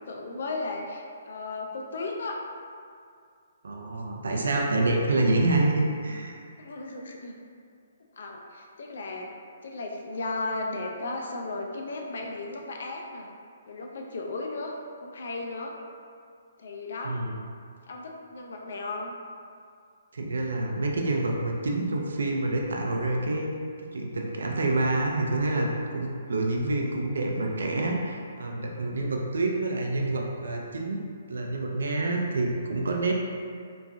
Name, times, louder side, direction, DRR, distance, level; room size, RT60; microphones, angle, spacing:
voice 1, 0.0-2.4 6.6-7.4 8.1-9.3 9.6-13.3 13.7-14.7 15.0-15.7 16.6-17.2 17.8-19.2 25.9-26.1 33.0-33.1, left 3 dB, 65° left, 1 dB, 0.4 m, -35 dB
voice 2, 3.6-6.4 17.0-17.4 20.1-23.5 23.8-31.0 31.3-33.1, right 2 dB, 85° right, 0 dB, 0.4 m, -27 dB
3.0 x 2.4 x 2.5 m, 2.3 s
hypercardioid pair, 165°, 0 cm